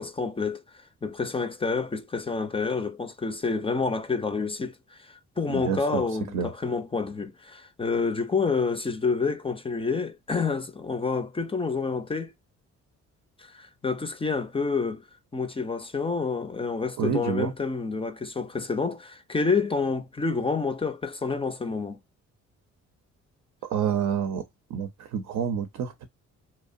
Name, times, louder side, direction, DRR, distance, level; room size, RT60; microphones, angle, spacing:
voice 1, 0.0-12.3 13.4-15.0 15.3-22.0, left 4 dB, 20° left, 0.4 m, -28 dB
voice 2, 5.5-6.0 6.3-6.5 17.0-17.5 23.6-24.4 24.7-26.0, right 8 dB, 75° right, 0.6 m, -28 dB
2.8 x 2.0 x 2.5 m
cardioid pair, 90°, 30 cm